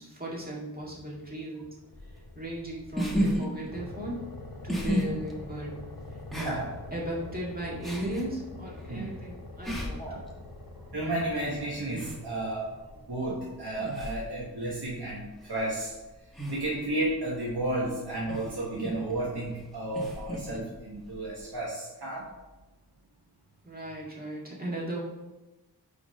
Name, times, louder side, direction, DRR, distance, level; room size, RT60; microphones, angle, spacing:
voice 1, 0.0-1.7 2.0-4.2 4.6-5.7 6.1-6.6 6.9-10.3 23.6-25.0, right 1 dB, 25° right, -5 dB, 2.1 m, -37 dB
sound 1, 0.8-3.0 3.7-13.1, left 2 dB, 65° left, 0.9 m, -46 dB
sound 2, 1.9-21.6, equal, ahead, 1.4 m, -36 dB
voice 2, 10.9-12.7 13.1-15.9 16.5-22.3, right 1 dB, 85° right, -6 dB, 1.4 m, -32 dB
5.0 x 4.9 x 5.1 m, 1.1 s
wide cardioid pair, 55°, 39 cm